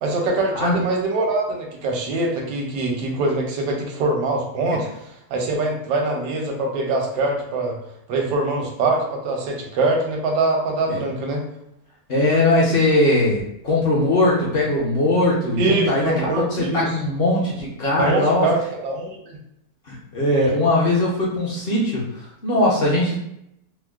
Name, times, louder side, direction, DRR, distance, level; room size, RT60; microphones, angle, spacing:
voice 1, 0.0-4.9 5.3-7.7 8.1-11.4 15.6-16.9 18.0-19.4, right 2 dB, 80° right, 0 dB, 1.3 m, -23 dB
voice 2, 0.5-1.0 4.7-4.8 10.9-11.0 12.1-18.5 19.9-22.1 22.4-23.2, left 1 dB, 50° left, -5 dB, 0.7 m, -20 dB
4.5 x 2.0 x 2.3 m, 0.78 s
omnidirectional pair, 1.8 m